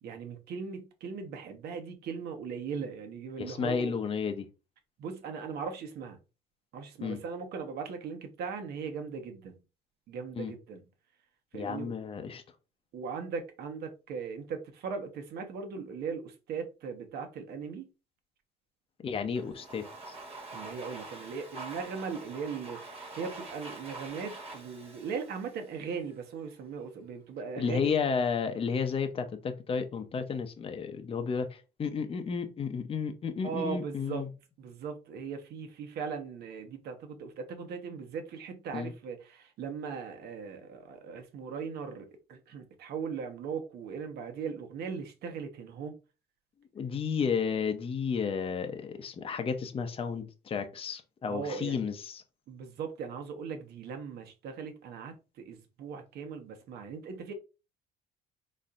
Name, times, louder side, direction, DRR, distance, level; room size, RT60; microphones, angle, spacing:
voice 1, 0.0-3.9 5.0-6.2 6.7-9.6 10.1-10.8 11.5-12.0 12.9-17.9 20.5-27.9 33.4-34.2 34.6-46.0 51.3-51.9 52.5-57.3, right 6 dB, 70° right, 1.1 m, -39 dB
voice 2, 3.4-4.5 7.0-7.2 10.4-10.5 11.5-12.4 19.0-20.2 27.6-34.3 38.7-38.9 46.7-52.2, left 6 dB, 35° left, 0.7 m, -32 dB
Domestic sounds home sounds, 19.4-26.2, right 2 dB, 35° right, 1.5 m, -45 dB
4.2 x 4.2 x 2.5 m
cardioid pair, 110°, 17 cm